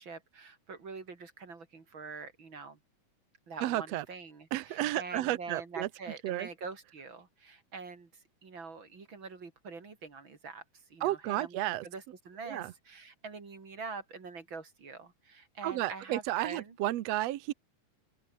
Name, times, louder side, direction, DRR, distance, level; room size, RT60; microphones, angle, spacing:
voice 1, 0.0-2.8 3.5-16.8, right 4 dB, 40° right, 3.5 m, -45 dB
voice 2, 3.6-4.1 4.5-5.9 6.2-6.5 11.0-11.9 12.5-12.7 15.6-17.5, right 15 dB, 70° right, 1.7 m, -32 dB
open air
omnidirectional pair, 3.7 m